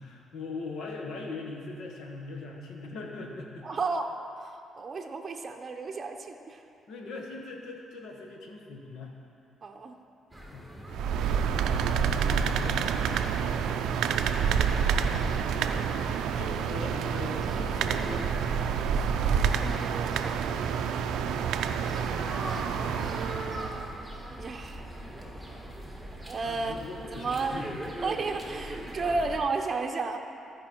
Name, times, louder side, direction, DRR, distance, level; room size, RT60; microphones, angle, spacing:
voice 1, 0.0-3.7 6.9-9.1 10.5-10.7 11.9-13.0 14.9-15.8 16.3-18.4 26.4-27.8, left 3 dB, 75° left, 1 dB, 1.3 m, -40 dB
voice 2, 3.6-4.1 4.4-6.6 9.6-9.9 19.4-20.7 22.3-24.9 26.2-26.8 27.1-27.7 28.0-30.2, right 3 dB, 40° right, 3 dB, 0.7 m, -34 dB
sound 1, 10.3-29.4, right 1 dB, ahead, 1.5 m, -43 dB
sound 2, 10.9-23.9, right 7 dB, 85° right, 0.4 m, -28 dB
14.5 x 5.0 x 4.5 m, 2.6 s
cardioid pair, 90°, 0 cm